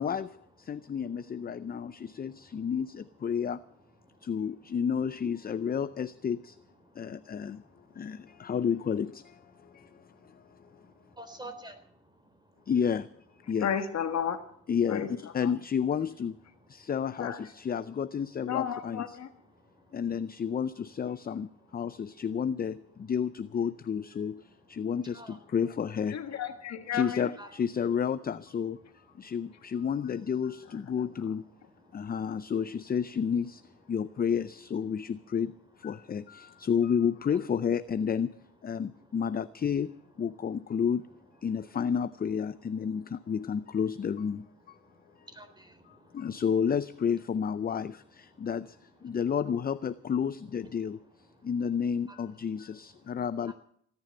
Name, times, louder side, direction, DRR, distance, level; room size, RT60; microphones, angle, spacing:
voice 1, 0.0-3.6 4.2-6.6 6.9-7.6 7.9-10.8 12.7-13.1 13.5-13.7 14.7-15.1 15.3-16.4 16.7-19.1 19.9-26.2 26.9-31.5 31.9-41.1 41.4-44.8 45.2-45.3 45.9-53.5, left 7 dB, 30° left, 0.5 m, -31 dB
voice 2, 7.0-8.4 9.8-12.2 25.1-25.4 27.4-27.5 29.2-29.3 32.0-32.1 45.3-46.2 53.5-53.6, right 1 dB, 15° right, 3.7 m, -50 dB
voice 3, 13.6-14.5 14.9-15.1 15.4-15.5 17.2-17.4 18.5-19.3 26.1-27.3 31.0-31.3, left 8 dB, 60° left, 1.7 m, -33 dB
17.5 x 9.8 x 7.7 m
cardioid pair, 90°, 30 cm